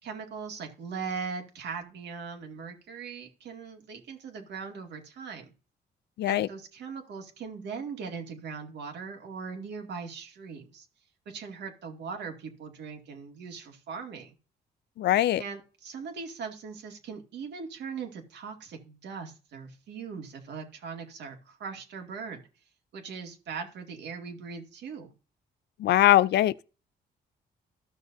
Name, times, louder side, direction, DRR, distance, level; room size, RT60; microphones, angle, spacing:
voice 1, 0.0-5.5 6.3-10.9 11.3-14.3 15.4-22.4 22.9-25.1, right 5 dB, 80° right, 2.1 m, -40 dB
voice 2, 15.0-15.4 25.8-26.6, left 13 dB, 75° left, 0.4 m, -22 dB
14.5 x 6.3 x 2.6 m
cardioid pair, 125°, 18 cm